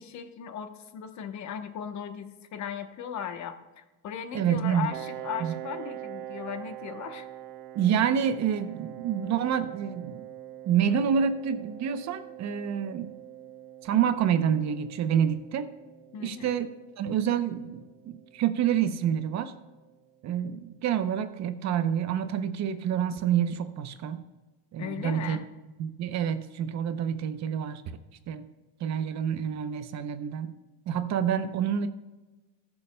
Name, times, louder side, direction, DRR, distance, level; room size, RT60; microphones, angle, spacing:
voice 1, 0.0-7.3 16.1-16.5 24.8-25.4, left 8 dB, 45° left, 9 dB, 1.0 m, -37 dB
voice 2, 4.3-4.9 5.4-5.5 7.7-10.2 10.7-13.2 13.8-15.7 16.2-16.7 17.0-19.5 20.2-24.2 24.7-25.4 25.8-27.8 28.3-28.5 28.8-30.5 30.9-31.9, right 8 dB, 45° right, 10 dB, 0.7 m, -27 dB
Piano, 4.9-20.3, right 12 dB, 80° right, 1.1 m, -44 dB
20.5 x 7.0 x 2.2 m, 1.2 s
cardioid pair, 130°, 40 cm